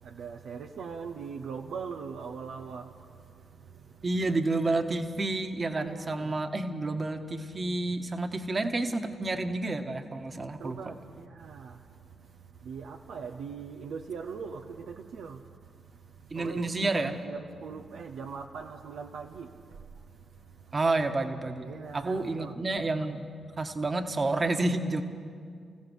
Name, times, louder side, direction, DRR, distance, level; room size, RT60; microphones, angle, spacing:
voice 1, 0.0-2.9 3.7-3.8 5.8-6.3 10.6-11.8 12.6-15.4 16.3-19.8 21.6-22.6, right 6 dB, 70° right, 0.8 m, -41 dB
voice 2, 4.0-10.8 16.3-17.2 20.7-23.3 23.6-25.0, right 2 dB, 40° right, 1.7 m, -30 dB
27.0 x 15.5 x 6.6 m
hypercardioid pair, 40°, 0 cm